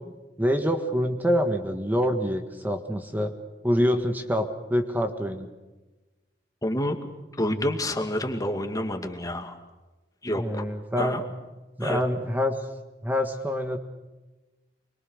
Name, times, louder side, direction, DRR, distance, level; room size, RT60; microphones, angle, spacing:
voice 1, 0.0-3.3 3.6-5.5 10.3-11.2 11.8-12.6 13.0-13.8, equal, 10° right, 6 dB, 1.6 m, -26 dB
voice 2, 6.6-7.0 7.4-9.6 10.2-10.6 11.0-11.2 11.8-12.0, left 1 dB, 20° left, 5 dB, 2.4 m, -28 dB
25.5 x 23.5 x 6.5 m, 1.1 s
head